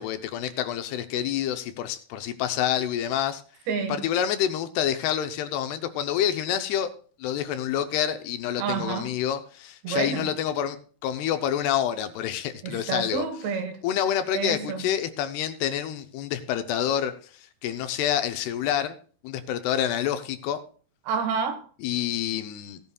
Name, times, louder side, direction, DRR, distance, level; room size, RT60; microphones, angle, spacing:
voice 1, 0.0-3.4 3.9-6.9 7.2-10.8 11.0-13.2 13.8-17.1 17.6-19.0 19.2-20.6 21.8-22.8, left 10 dB, 80° left, 2.6 m, -27 dB
voice 2, 3.7-4.0 8.6-9.1 9.8-10.3 12.6-13.8 14.3-14.8 21.1-21.6, right 5 dB, 75° right, 3.6 m, -29 dB
17.0 x 11.0 x 2.3 m
omnidirectional pair, 4.9 m